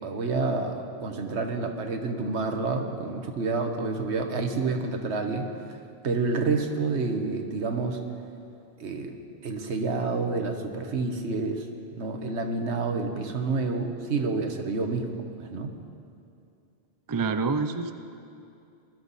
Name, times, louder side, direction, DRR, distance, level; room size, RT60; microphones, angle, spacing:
voice 1, 0.0-5.5 6.0-8.0 8.8-9.2 9.4-11.7 12.0-15.1 15.4-15.8, right 3 dB, 85° right, 5 dB, 1.4 m, -28 dB
voice 2, 17.1-17.9, right 4 dB, 30° right, 9 dB, 0.4 m, -27 dB
20.0 x 13.0 x 4.1 m, 2.6 s
omnidirectional pair, 1.1 m